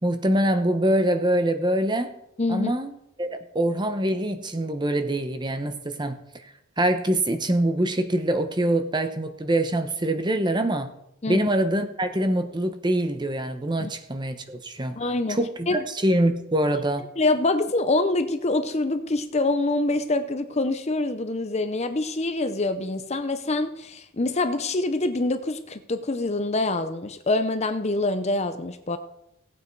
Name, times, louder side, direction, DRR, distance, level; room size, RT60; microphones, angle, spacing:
voice 1, 0.0-2.1 2.5-6.2 6.4-6.5 6.8-10.9 11.3-14.9 15.3-17.1, right 1 dB, 20° right, 1.0 m, -24 dB
voice 2, 2.4-2.8 11.2-11.5 13.8-13.9 15.0-15.4 15.7-15.8 17.2-29.0, left 2 dB, 30° left, 0.6 m, -25 dB
17.0 x 8.8 x 4.7 m
head